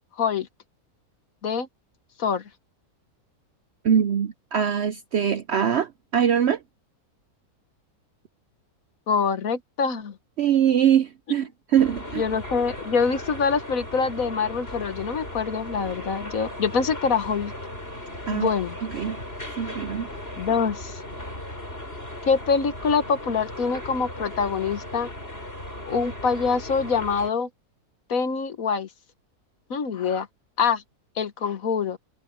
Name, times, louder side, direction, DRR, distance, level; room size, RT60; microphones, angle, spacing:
voice 1, 0.1-0.5 1.4-1.7 2.2-2.5 9.1-10.2 12.1-17.5 18.3-18.8 20.4-21.0 22.2-25.1 25.8-27.5 28.1-28.9 29.7-30.3 30.6-30.8 31.1-32.0, left 5 dB, 65° left, 1.7 m, -25 dB
voice 2, 3.8-6.6 10.4-12.2 18.3-18.5 18.9-19.2 19.6-20.1, right 9 dB, 65° right, 0.7 m, -22 dB
sound 1, 11.8-27.3, left 1 dB, 40° left, 7.5 m, -37 dB
omnidirectional pair, 1.6 m